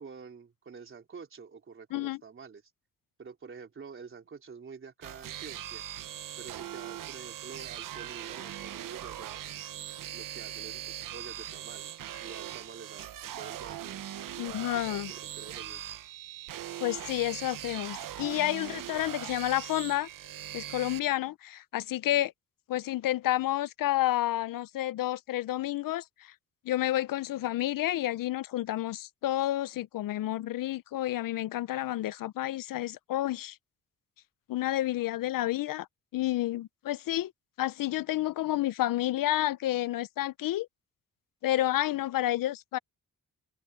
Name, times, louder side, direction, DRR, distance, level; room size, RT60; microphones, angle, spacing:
voice 1, 0.0-2.6 3.2-5.8 6.4-9.4 10.1-14.0 14.7-15.9, right 5 dB, 35° right, 3.8 m, -48 dB
sound 1, 5.0-21.0, right 12 dB, 65° right, 0.8 m, -40 dB
voice 2, 14.4-15.1 16.8-20.1 20.5-22.3 22.7-26.3 26.7-33.6 34.5-35.9 36.1-37.3 37.6-40.7 41.4-42.8, left 14 dB, 70° left, 0.5 m, -30 dB
wide cardioid pair, 175°, 35 cm